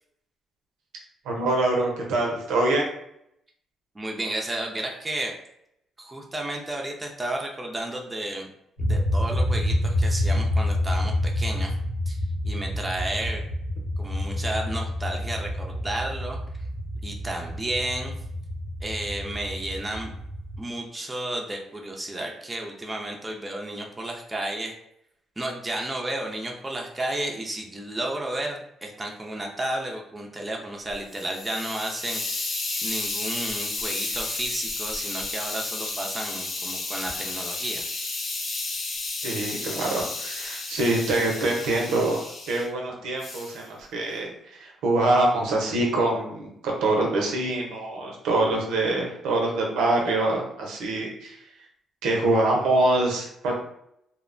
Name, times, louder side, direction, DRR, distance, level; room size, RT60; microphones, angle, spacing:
voice 1, 1.3-2.9 39.2-42.2 42.5-44.3 44.6-51.4 52.0-53.6, right 2 dB, 90° right, -1 dB, 0.6 m, -24 dB
voice 2, 3.9-5.3 6.0-8.5 8.8-11.7 12.1-12.2 12.4-13.4 14.0-16.4 17.0-18.1 18.8-20.1 20.6-24.7 25.4-32.5 32.8-37.8, right 1 dB, 15° right, 0 dB, 0.5 m, -32 dB
sound 1, 8.8-20.6, left 1 dB, 80° left, 1.2 m, -28 dB
Hiss, 30.9-42.7 43.2-43.6, left 3 dB, 60° left, 0.6 m, -32 dB
2.7 x 2.1 x 2.5 m, 0.76 s
cardioid pair, 90°, 0 cm